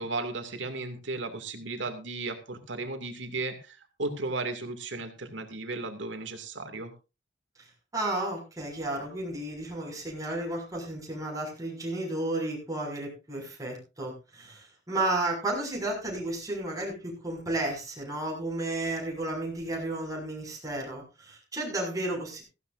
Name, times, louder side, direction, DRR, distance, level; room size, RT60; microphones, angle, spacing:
voice 1, 0.0-6.9, right 3 dB, 75° right, 6 dB, 2.5 m, -35 dB
voice 2, 7.6-22.4, right 2 dB, 20° right, -1 dB, 6.1 m, -33 dB
17.0 x 15.0 x 2.6 m, 0.30 s
head